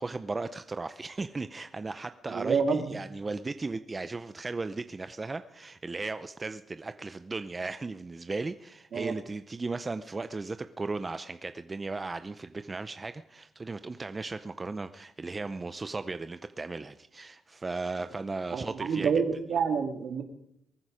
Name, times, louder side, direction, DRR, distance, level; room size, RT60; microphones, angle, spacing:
voice 1, 0.0-19.1, right 3 dB, 25° right, 11 dB, 0.6 m, -36 dB
voice 2, 2.3-2.9 8.9-9.1 18.5-20.2, right 5 dB, 60° right, 6 dB, 2.2 m, -28 dB
23.0 x 9.8 x 5.0 m, 0.78 s
cardioid pair, 90°, 0 cm